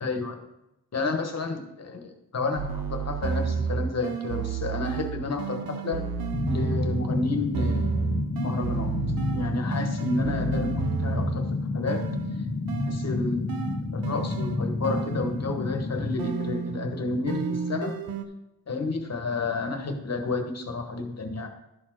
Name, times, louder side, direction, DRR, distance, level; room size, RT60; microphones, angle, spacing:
voice 1, 0.0-0.4 0.9-6.0 6.5-8.1 8.4-8.9 9.3-12.1 12.9-13.5 13.9-18.0 18.7-21.5, left 3 dB, 50° left, 5 dB, 1.1 m, -31 dB
sound 1, 2.6-7.2 7.5-11.5 11.9-15.6 16.2-18.2, right 6 dB, 80° right, 0.7 m, -31 dB
sound 2, 6.3-16.2, left 3 dB, 25° left, 0.5 m, -30 dB
11.5 x 4.3 x 4.4 m, 0.89 s
wide cardioid pair, 125°, 34 cm